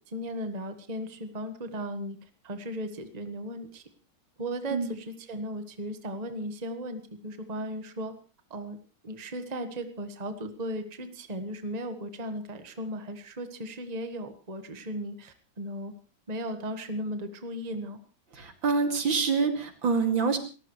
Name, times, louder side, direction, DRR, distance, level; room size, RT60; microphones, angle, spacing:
voice 1, 0.0-2.2 2.4-3.8 4.4-8.1 8.5-8.8 9.0-15.9 16.3-18.0, equal, 20° right, 7 dB, 1.5 m, -36 dB
voice 2, 18.3-20.4, right 5 dB, 70° right, 5 dB, 3.2 m, -26 dB
29.5 x 14.5 x 3.2 m, 0.34 s
omnidirectional pair, 2.2 m